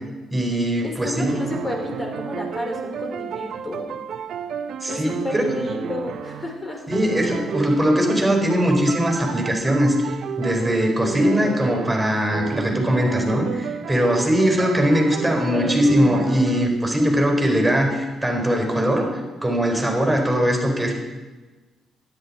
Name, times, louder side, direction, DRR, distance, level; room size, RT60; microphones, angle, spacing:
voice 1, 0.3-1.3 4.8-5.4 6.9-19.1 19.4-20.9, equal, 5° right, 1 dB, 4.3 m, -21 dB
voice 2, 0.8-3.9 4.9-6.8 15.2-15.8, left 1 dB, 25° left, 2 dB, 3.1 m, -31 dB
sound 1, 1.2-6.6 6.9-16.7, right 8 dB, 70° right, 0.6 m, -32 dB
13.0 x 10.5 x 4.3 m, 1.2 s
cardioid pair, 90°, 0 cm